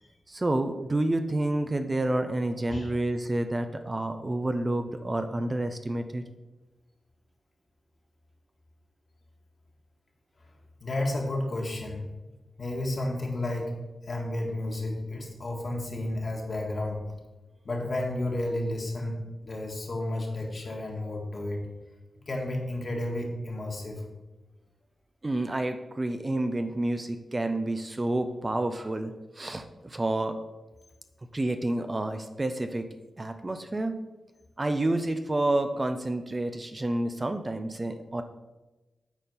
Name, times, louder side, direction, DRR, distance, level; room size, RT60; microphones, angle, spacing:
voice 1, 0.3-6.2 25.2-30.4 31.3-32.9 33.2-34.0 34.6-38.2, right 1 dB, 30° right, 8 dB, 0.6 m, -29 dB
voice 2, 10.8-12.0 12.6-13.7 14.0-17.0 17.6-21.7 22.3-24.0, left 1 dB, 50° left, 0 dB, 1.9 m, -32 dB
8.9 x 4.3 x 5.4 m, 1.1 s
cardioid pair, 80°, 0 cm